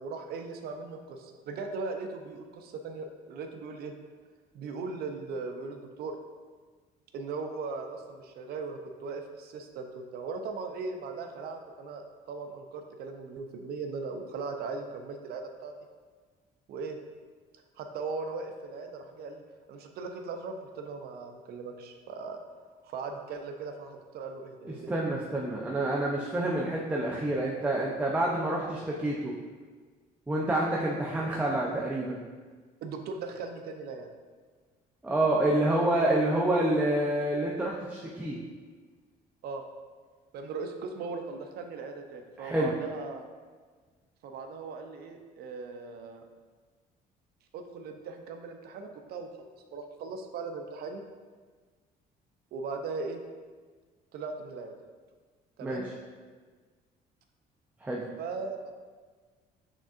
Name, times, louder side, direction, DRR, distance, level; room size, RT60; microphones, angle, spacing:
voice 1, 0.0-3.9 4.5-6.1 7.1-15.7 16.7-17.0 17.8-19.4 19.7-22.4 22.8-25.0 32.8-34.1 39.4-39.7 40.3-43.3 44.2-46.2 47.5-51.0 52.5-53.2 54.1-54.7 55.6-55.9 58.2-58.7, right 4 dB, 65° right, 4 dB, 0.5 m, -38 dB
voice 2, 24.6-29.3 30.3-32.2 35.0-38.4 42.4-42.7 55.6-55.8 57.8-58.0, right 1 dB, 10° right, -3 dB, 0.5 m, -28 dB
6.1 x 3.6 x 2.4 m, 1.5 s
cardioid pair, 110°, 17 cm